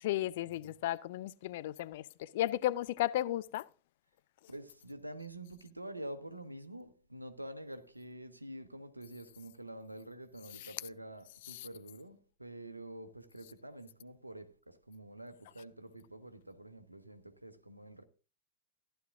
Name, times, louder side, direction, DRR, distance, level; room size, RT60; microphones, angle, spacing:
voice 1, 0.0-3.6 10.5-10.8 11.4-11.7, left 14 dB, 55° left, 0.4 m, -34 dB
voice 2, 4.5-18.0, right 1 dB, 85° right, 0.8 m, -47 dB
14.5 x 11.0 x 2.5 m
figure-of-eight pair, 90°, 0 cm